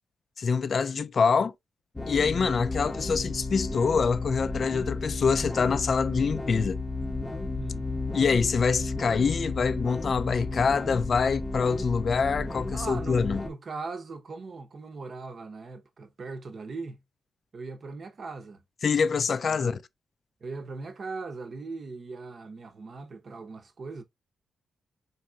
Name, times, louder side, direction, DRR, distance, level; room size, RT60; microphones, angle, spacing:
voice 1, 0.4-1.5 2.1-6.8 8.1-13.4 18.8-19.8, left 5 dB, 55° left, 0.3 m, -25 dB
sound 1, 2.0-13.5, left 2 dB, 20° left, 0.6 m, -33 dB
voice 2, 7.6-7.9 12.7-17.0 17.5-18.6 19.3-19.7 20.4-24.0, right 3 dB, 55° right, 0.7 m, -39 dB
3.9 x 2.6 x 2.3 m
cardioid pair, 55°, 0 cm